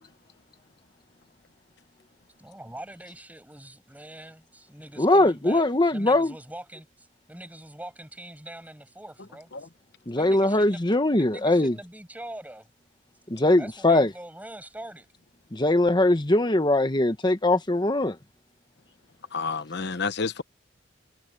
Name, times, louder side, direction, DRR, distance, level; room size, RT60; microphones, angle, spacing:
voice 1, 2.4-9.7 10.2-10.9 11.2-12.7 13.6-15.1, right 1 dB, 10° right, 6.7 m, -43 dB
voice 2, 5.0-6.3 10.1-11.7 13.3-14.1 15.5-18.1, left 2 dB, 25° left, 1.3 m, -21 dB
voice 3, 19.3-20.4, left 4 dB, 65° left, 1.0 m, -29 dB
head